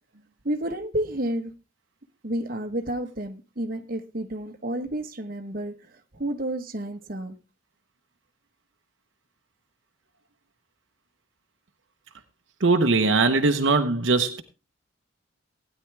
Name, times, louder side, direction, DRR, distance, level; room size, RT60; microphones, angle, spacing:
voice 1, 0.4-1.5 2.2-5.7 6.1-7.4, right 1 dB, 45° right, 1.2 m, -30 dB
voice 2, 12.6-14.4, right 3 dB, 65° right, 0.9 m, -21 dB
16.5 x 10.0 x 3.4 m
head